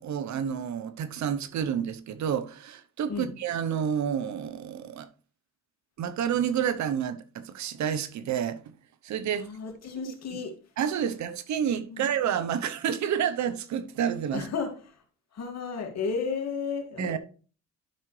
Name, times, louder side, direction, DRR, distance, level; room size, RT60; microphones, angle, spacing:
voice 1, 0.0-5.1 6.0-8.6 9.0-9.5 10.1-10.2 10.8-14.4 17.0-17.2, right 8 dB, 65° right, 0.9 m, -29 dB
voice 2, 9.3-10.5 11.9-12.1 14.3-15.0 15.3-17.2, left 5 dB, 60° left, 2.3 m, -33 dB
11.5 x 5.7 x 3.2 m
cardioid pair, 90°, 30 cm